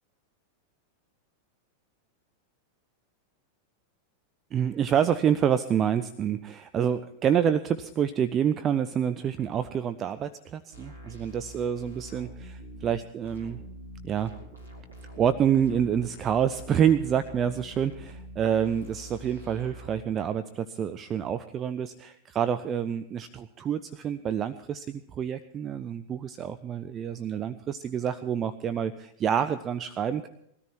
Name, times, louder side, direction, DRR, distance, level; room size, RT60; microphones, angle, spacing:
voice 1, 4.5-13.6 14.0-14.3 15.2-30.3, right 8 dB, 25° right, 12 dB, 0.5 m, -27 dB
sound 1, 10.7-20.0, right 1 dB, 85° right, 3.6 m, -45 dB
21.0 x 13.5 x 4.5 m, 0.74 s
figure-of-eight pair, 90°, 0 cm